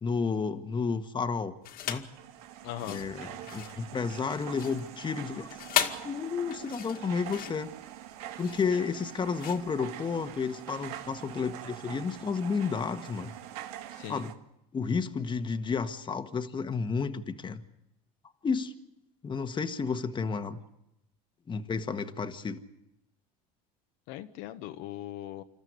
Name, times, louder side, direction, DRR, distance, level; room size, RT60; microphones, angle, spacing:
voice 1, 0.0-1.5 1.9-2.1 2.9-5.5 6.0-7.7 8.4-13.3 14.1-14.3 14.7-17.6 18.4-18.7 19.2-20.6 21.5-22.6, left 5 dB, 25° left, 8 dB, 1.6 m, -31 dB
sound 1, 1.6-2.2 2.7-10.5, left 10 dB, 50° left, 2.1 m, -36 dB
sound 2, 2.0-14.3, right 12 dB, 80° right, 1.9 m, -44 dB
voice 2, 2.6-3.0 13.9-14.3 24.1-25.4, left 13 dB, 70° left, 8 dB, 1.5 m, -40 dB
27.5 x 14.0 x 9.6 m, 0.87 s
supercardioid pair, 100°, 19 cm